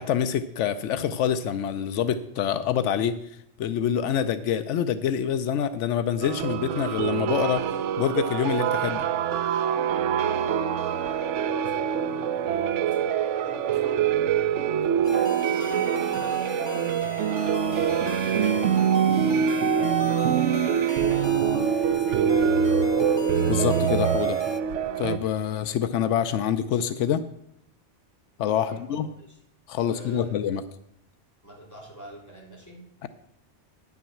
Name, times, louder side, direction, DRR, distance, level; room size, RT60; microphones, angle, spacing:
voice 1, 0.0-3.2 3.6-7.7 8.0-9.1 23.5-24.4 25.0-27.2 28.4-29.1 29.7-30.6 33.0-33.1, left 9 dB, 85° left, 12 dB, 0.9 m, -26 dB
sound 1, 6.2-25.2, right 8 dB, 80° right, 0.9 m, -24 dB
voice 2, 10.2-12.8 13.3-20.5 20.9-22.3 28.6-29.4 29.7-30.4 31.4-32.9, right 1 dB, 15° left, -3 dB, 3.3 m, -43 dB
sound 2, 15.0-24.6, left 5 dB, 40° left, 0.4 m, -40 dB
9.9 x 6.2 x 7.1 m, 0.74 s
omnidirectional pair, 1.2 m